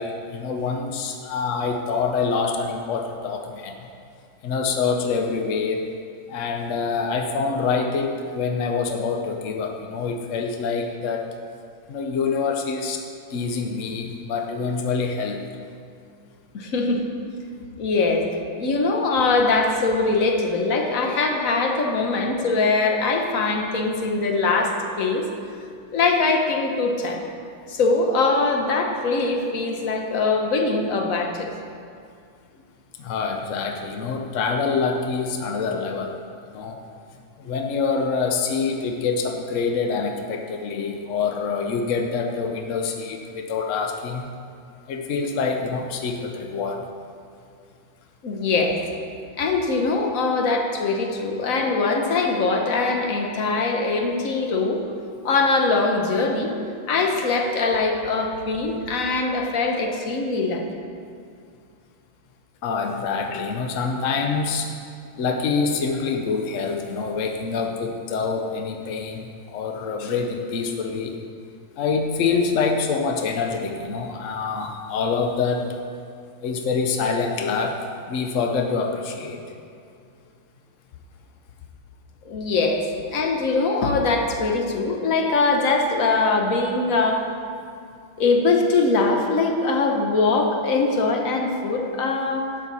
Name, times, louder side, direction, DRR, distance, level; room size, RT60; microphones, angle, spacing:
voice 1, 0.0-3.8 4.4-5.9 6.3-11.3 11.9-13.0 13.3-15.5 33.0-36.8 37.4-44.3 44.9-46.9 62.6-64.7 65.2-71.2 71.8-75.7 76.4-79.4, left 5 dB, 75° left, 3 dB, 0.7 m, -26 dB
voice 2, 16.5-17.0 17.8-18.3 18.6-25.3 25.9-27.2 27.7-31.5 48.2-48.8 49.4-54.8 55.2-56.5 56.9-60.6 82.2-82.9 83.1-87.3 88.2-92.4, left 3 dB, 50° left, 3 dB, 1.1 m, -22 dB
11.5 x 8.8 x 4.1 m, 2.3 s
omnidirectional pair, 2.3 m